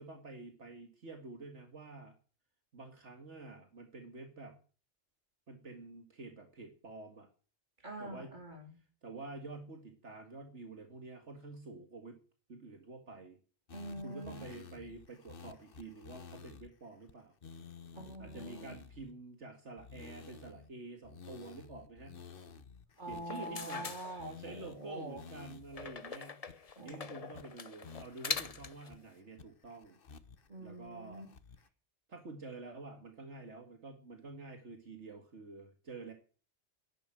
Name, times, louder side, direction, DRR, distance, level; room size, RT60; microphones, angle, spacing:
voice 1, 0.0-2.1 2.7-4.6 5.5-7.3 8.0-8.3 9.0-12.2 12.5-13.4 14.0-17.3 18.2-22.2 23.1-23.9 24.4-30.0 30.6-31.3 32.1-36.1, right 3 dB, 75° right, 5 dB, 2.4 m, -49 dB
voice 2, 7.8-8.8 13.7-14.5 17.9-18.7 23.0-25.2 26.8-27.2 30.5-31.3, right 1 dB, 40° right, 4 dB, 3.5 m, -45 dB
sound 1, 13.7-16.7 17.1-17.2 17.4-19.1 19.8-20.7 21.0-23.9 24.2-24.8 25.2-25.9 26.1-26.2 26.5-26.9 27.3-27.4 27.8-29.0 29.4-30.5 30.9-31.7, left 5 dB, 50° left, 1.3 m, -52 dB
sound 2, 23.1-24.7 25.7-28.9, left 5 dB, 35° left, 0.8 m, -42 dB
11.5 x 11.0 x 7.6 m, 0.38 s
omnidirectional pair, 1.2 m